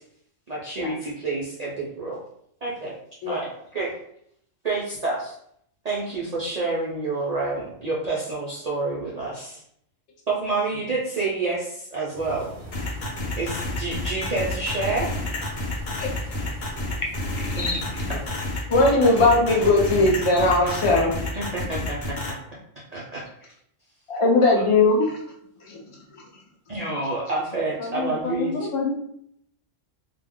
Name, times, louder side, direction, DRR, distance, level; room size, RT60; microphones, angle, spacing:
voice 1, 0.5-2.2 2.6-3.0 3.3-3.5 3.7-3.9 4.6-5.3 5.8-9.6 10.3-12.5 13.4-15.1 17.5-17.9 18.5-18.6 21.3-22.4 22.9-23.5 26.7-28.5, right 3 dB, 55° right, -6 dB, 0.4 m, -28 dB
sound 1, 12.1-18.3, equal, 30° right, 0.7 m, -39 dB
sound 2, 12.7-22.3, left 2 dB, 60° left, 0.8 m, -30 dB
voice 2, 18.7-21.1 24.1-25.2 25.7-25.8, left 2 dB, 40° left, -2 dB, 0.5 m, -19 dB
voice 3, 27.8-28.9, left 4 dB, 80° left, 1 dB, 1.0 m, -29 dB
2.3 x 2.1 x 3.5 m, 0.70 s
omnidirectional pair, 1.3 m